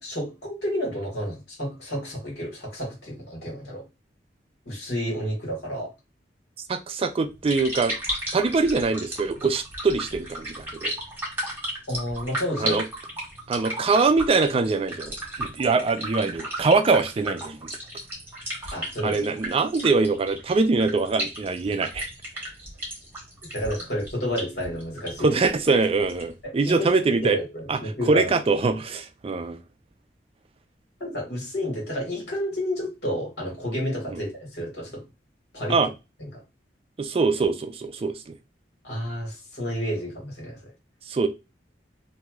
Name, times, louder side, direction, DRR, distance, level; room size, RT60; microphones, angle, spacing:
voice 1, 0.0-3.8 4.6-5.9 11.9-12.8 18.7-19.2 23.5-25.4 26.4-28.3 31.0-35.0 35.5-35.8 36.2-36.4 38.8-40.7, equal, 70° left, 1.7 m, -30 dB
voice 2, 6.7-7.9 8.3-10.9 12.6-12.8 13.5-17.7 19.0-22.1 25.2-27.4 27.7-27.8 28.1-29.6 34.1-34.2 35.7-35.9 37.0-38.4 41.1-41.3, right 4 dB, 35° right, 0.4 m, -23 dB
sound 1, 7.2-26.4, right 1 dB, 15° right, 1.3 m, -35 dB
3.0 x 2.6 x 2.3 m
head